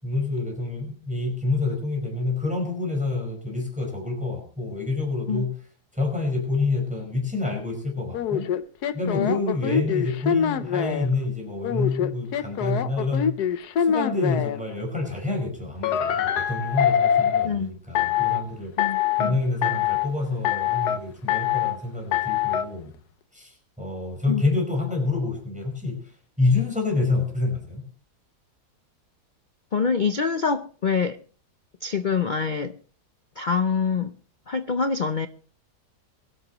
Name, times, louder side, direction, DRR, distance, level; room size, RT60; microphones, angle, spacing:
voice 1, 0.0-5.5 5.9-8.5 8.9-13.3 13.8-18.7 19.2-22.9 23.3-26.0 26.4-27.8, left 3 dB, 5° right, 5.1 m, -27 dB
sound 1, 8.1-11.1 11.6-14.6 15.8-17.5 18.0-18.4 18.8-19.3 19.6-20.1 20.4-21.0 21.3-21.8 22.1-22.6, left 9 dB, 75° left, 1.4 m, -24 dB
voice 2, 18.8-19.4 24.3-24.4 29.7-31.2 31.8-32.8 33.4-34.1 34.5-35.3, left 5 dB, 55° left, 0.5 m, -25 dB
22.5 x 12.0 x 3.0 m
omnidirectional pair, 1.7 m